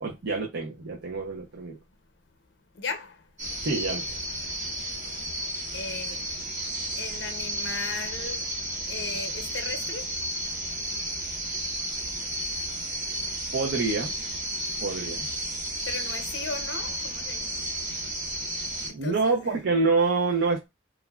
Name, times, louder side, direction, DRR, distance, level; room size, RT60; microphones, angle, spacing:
voice 1, 0.0-1.8 3.6-4.2 13.5-14.1 14.8-15.3 18.9-20.7, right 3 dB, 80° right, 0.6 m, -26 dB
voice 2, 2.8-3.2 5.7-6.2 7.0-8.5 8.9-10.1 15.9-17.5 19.0-19.6, left 4 dB, 85° left, 0.7 m, -36 dB
sound 1, 3.4-18.9, right 1 dB, 45° right, 1.1 m, -32 dB
3.1 x 2.5 x 2.3 m
head